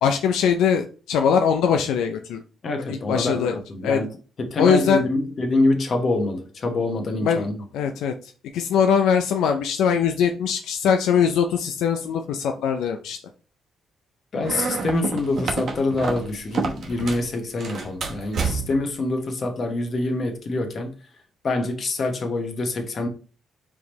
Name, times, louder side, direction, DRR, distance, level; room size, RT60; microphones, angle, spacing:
voice 1, 0.0-2.4 2.9-3.6 3.8-4.0 4.6-5.1 7.2-7.5 7.7-13.2, left 7 dB, 85° left, 0.4 m, -21 dB
voice 2, 2.6-4.1 4.4-7.6 14.3-20.9 21.4-23.1, left 2 dB, 50° left, 1.2 m, -25 dB
sound 1, 14.4-17.3 17.6-18.9, right 4 dB, 60° right, 0.9 m, -29 dB
4.8 x 3.6 x 3.1 m
cardioid pair, 90°, 0 cm